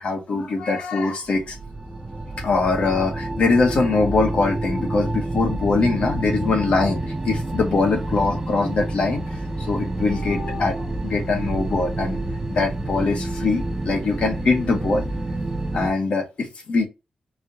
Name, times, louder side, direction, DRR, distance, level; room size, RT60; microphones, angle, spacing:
voice 1, 0.0-1.6 2.4-9.2 9.6-12.2 12.5-15.0 15.7-16.9, left 3 dB, 55° left, 1.4 m, -22 dB
sound 1, 1.3-15.9, right 2 dB, 15° right, 0.7 m, -28 dB
4.6 x 2.9 x 2.8 m
wide cardioid pair, 165°, 2 cm